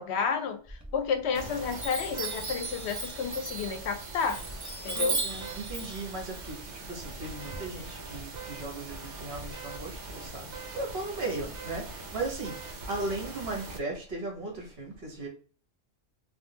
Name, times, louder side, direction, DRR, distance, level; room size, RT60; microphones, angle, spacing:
voice 1, 0.0-4.4 4.8-5.2, left 6 dB, 70° left, 0.8 m, -31 dB
Chime, 0.7-1.3 1.7-7.6, right 3 dB, 25° right, 0.4 m, -36 dB
sound 1, 1.3-13.8, right 3 dB, 70° right, 1.0 m, -42 dB
voice 2, 4.9-15.3, right 2 dB, 55° right, 1.3 m, -37 dB
3.4 x 2.3 x 2.8 m
omnidirectional pair, 1.2 m